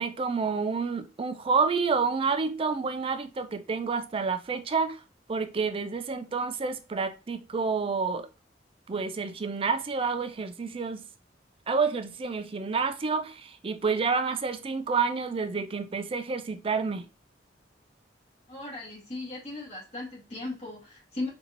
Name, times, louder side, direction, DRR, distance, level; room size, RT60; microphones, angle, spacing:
voice 1, 0.0-5.0 5.3-8.3 8.9-11.0 11.7-17.1, right 5 dB, 30° right, 0.4 m, -29 dB
voice 2, 18.5-21.3, left 2 dB, 35° left, 1.8 m, -37 dB
3.9 x 2.7 x 2.9 m
head